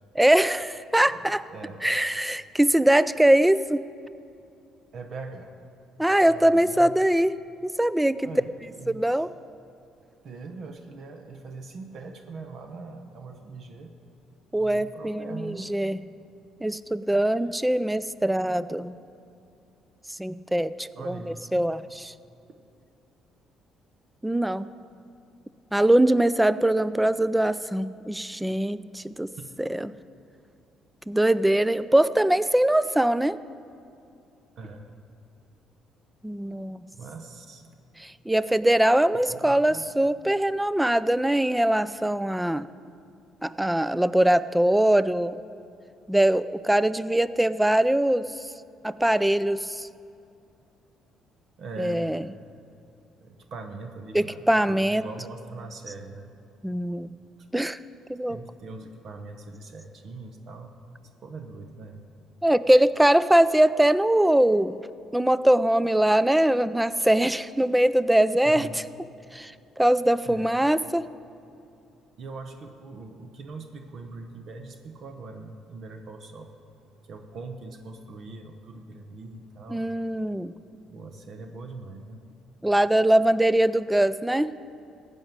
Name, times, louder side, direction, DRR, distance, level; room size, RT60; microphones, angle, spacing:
voice 1, 0.2-1.4 1.8-3.8 6.0-7.3 7.6-8.3 8.9-9.3 14.5-16.0 16.6-18.9 20.2-21.2 21.5-22.1 24.2-24.7 25.7-29.3 29.6-29.9 31.1-33.4 36.2-36.8 38.0-42.7 43.4-45.3 46.1-48.3 48.8-49.9 51.8-52.2 54.1-55.0 56.6-57.1 57.5-57.8 58.1-58.4 62.4-64.8 65.1-68.7 69.3-71.0 79.7-80.5 82.6-84.5, right 1 dB, 5° right, 16 dB, 0.4 m, -22 dB
voice 2, 1.1-1.9 4.9-5.5 6.2-6.9 8.2-9.2 10.2-13.9 14.6-15.7 20.9-21.4 34.6-34.9 36.9-37.7 39.3-39.8 51.6-52.3 53.2-56.3 58.3-62.0 68.4-68.8 70.2-70.7 72.2-76.5 77.0-79.8 80.9-82.2, right 3 dB, 55° right, 6 dB, 1.0 m, -41 dB
15.5 x 5.4 x 9.4 m, 2.6 s
cardioid pair, 90°, 0 cm